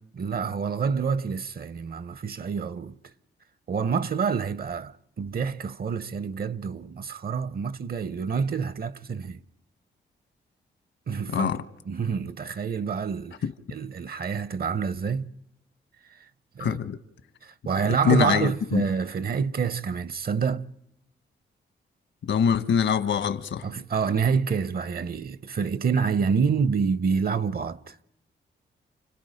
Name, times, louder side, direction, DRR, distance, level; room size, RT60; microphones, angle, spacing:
voice 1, 0.1-2.9 3.7-9.4 11.1-11.5 11.8-13.4 13.7-15.3 16.0-16.3 16.6-16.8 17.4-20.7 23.6-28.0, right 6 dB, 55° right, 0.9 m, -27 dB
voice 2, 16.6-17.0 18.0-18.8 22.3-23.7, left 7 dB, 75° left, 1.4 m, -24 dB
29.5 x 29.0 x 5.2 m
cardioid pair, 60°, 19 cm